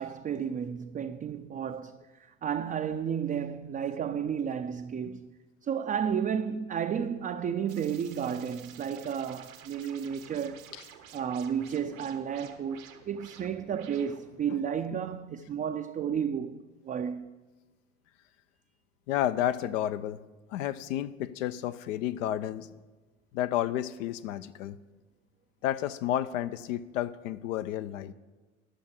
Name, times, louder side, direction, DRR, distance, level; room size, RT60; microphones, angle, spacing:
voice 1, 0.0-5.3 5.6-10.7 11.1-17.4, right 8 dB, 20° right, 0.4 m, -32 dB
sound 1, 7.7-14.4, right 8 dB, 85° right, 1.3 m, -51 dB
voice 2, 19.1-20.2 20.5-22.7 23.3-24.8 25.6-28.1, left 12 dB, 70° left, 0.6 m, -31 dB
11.5 x 6.3 x 7.2 m
hypercardioid pair, 70°, 39 cm